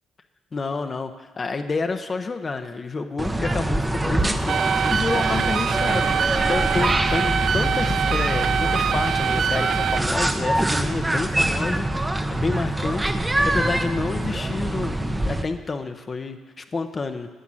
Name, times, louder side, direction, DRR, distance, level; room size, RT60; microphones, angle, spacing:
voice 1, 0.5-17.3, left 4 dB, 35° left, 7 dB, 0.8 m, -29 dB
sound 1, 3.2-15.4, right 1 dB, 15° right, 0.7 m, -24 dB
sound 2, 4.5-10.0, right 8 dB, 65° right, 0.4 m, -24 dB
10.0 x 7.2 x 8.8 m, 1.3 s
cardioid pair, 90°, 0 cm